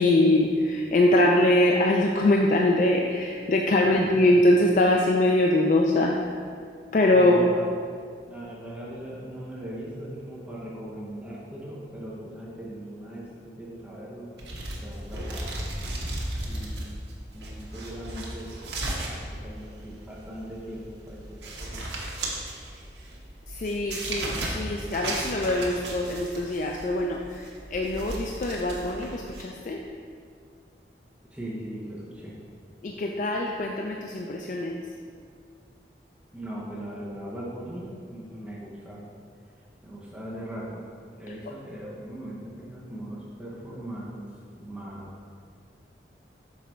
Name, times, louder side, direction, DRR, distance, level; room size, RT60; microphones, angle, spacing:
voice 1, 0.0-6.2 6.9-7.4 23.5-29.8 32.8-34.8, left 1 dB, 45° left, 0 dB, 0.3 m, -23 dB
voice 2, 7.1-7.6 8.2-14.3 14.8-15.6 16.5-16.9 17.3-18.5 19.0-21.8 31.3-32.3 36.3-39.1 39.8-40.9 41.2-44.2 44.6-45.1, right 1 dB, 5° right, -7 dB, 0.8 m, -39 dB
sound 1, 14.4-29.4, right 1 dB, 80° right, 1.1 m, -35 dB
6.2 x 4.1 x 4.4 m, 2.2 s
head